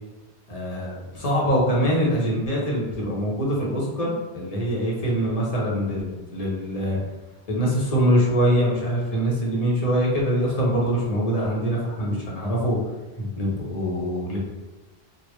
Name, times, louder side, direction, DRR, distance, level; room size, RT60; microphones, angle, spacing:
voice 1, 0.5-7.0 7.5-12.8 13.2-14.4, equal, 40° left, -4 dB, 0.8 m, -24 dB
3.3 x 2.2 x 3.0 m, 1.2 s
omnidirectional pair, 1.1 m